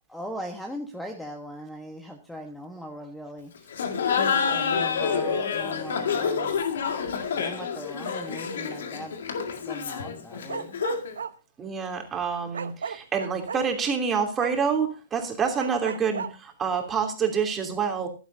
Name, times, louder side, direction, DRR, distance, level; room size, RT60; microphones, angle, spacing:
voice 1, 0.1-3.5 4.5-6.6 7.3-9.2 9.6-10.7, equal, 5° left, 4 dB, 1.4 m, -39 dB
Laughter, 3.7-11.2, left 6 dB, 65° left, 2.0 m, -28 dB
Bark, 10.4-11.3 12.5-13.6 14.4-14.5 15.6-16.3, right 6 dB, 75° right, 1.0 m, -34 dB
voice 2, 11.6-18.1, right 6 dB, 20° right, 3 dB, 3.0 m, -27 dB
15.5 x 11.5 x 2.7 m, 0.33 s
figure-of-eight pair, 120°, 0 cm